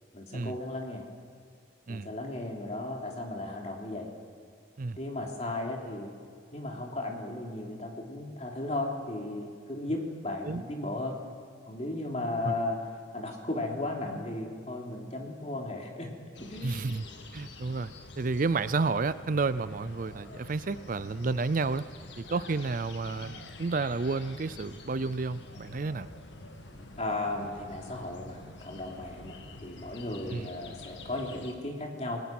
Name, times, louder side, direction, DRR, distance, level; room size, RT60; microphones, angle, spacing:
voice 1, 0.1-1.0 1.9-4.1 5.0-6.1 6.5-11.2 11.7-12.8 13.1-16.1 16.4-16.8 27.0-32.2, left 2 dB, 35° left, 0 dB, 3.3 m, -35 dB
sound 1, 16.3-31.5, left 2 dB, 75° left, 1.7 m, -47 dB
voice 2, 16.6-17.1 17.3-17.9 18.2-21.8 22.2-26.1 30.3-30.5, right 3 dB, 45° right, 15 dB, 0.5 m, -31 dB
27.5 x 19.0 x 6.0 m, 2.2 s
head